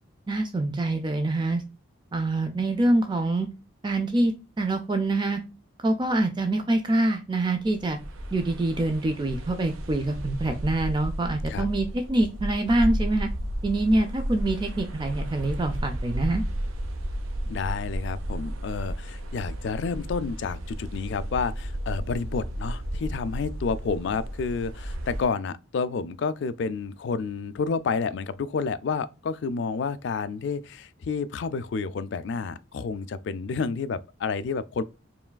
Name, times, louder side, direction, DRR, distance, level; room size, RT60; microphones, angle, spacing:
voice 1, 0.3-1.6 2.1-3.5 3.8-5.4 5.8-8.0 8.3-13.3 13.6-16.4, right 2 dB, 20° right, 0.3 m, -25 dB
sound 1, 7.6-25.2, equal, 85° right, 0.6 m, -33 dB
voice 2, 17.5-34.8, left 5 dB, 60° left, 0.3 m, -30 dB
4.7 x 3.1 x 2.2 m
head